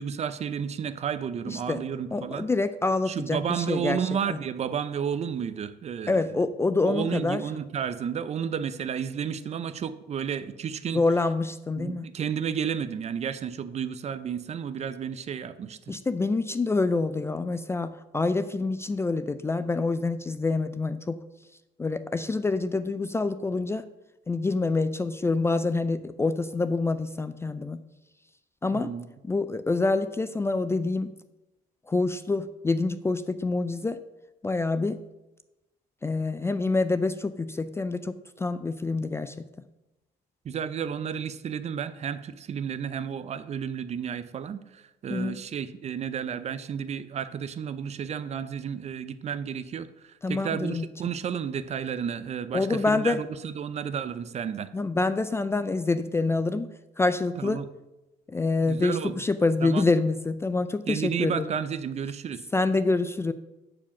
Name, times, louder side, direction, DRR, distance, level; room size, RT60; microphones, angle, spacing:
voice 1, 0.0-2.5 3.1-6.4 6.8-11.0 11.8-16.0 28.7-29.1 40.4-54.7 57.4-57.7 58.7-59.2 59.6-59.9 60.9-62.4, right 7 dB, 40° right, 13 dB, 0.5 m, -32 dB
voice 2, 1.5-1.8 2.1-4.0 4.3-4.4 6.1-7.4 10.9-12.1 15.9-21.2 21.8-23.8 24.3-27.8 28.6-28.9 29.2-31.1 31.9-34.0 34.4-35.0 36.0-39.3 45.1-45.4 50.2-50.9 52.5-53.2 54.7-56.7 57.0-57.6 58.3-61.5 62.5-63.3, left 3 dB, 15° left, 12 dB, 0.3 m, -26 dB
8.6 x 5.0 x 5.9 m, 0.99 s
cardioid pair, 110°, 17 cm